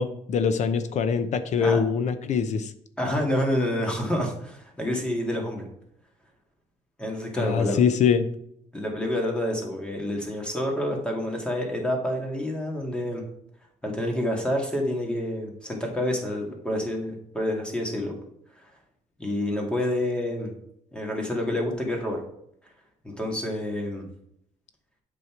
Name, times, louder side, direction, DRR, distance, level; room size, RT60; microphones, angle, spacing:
voice 1, 0.0-2.7 7.4-8.3, left 6 dB, 65° left, 11 dB, 0.8 m, -23 dB
voice 2, 3.0-5.6 7.0-7.8 8.7-13.2 13.8-18.1 18.6-18.7 19.2-20.5 20.9-22.2 23.0-24.1, left 1 dB, 5° left, 1 dB, 2.2 m, -28 dB
8.2 x 5.6 x 4.6 m, 0.72 s
cardioid pair, 120°, 13 cm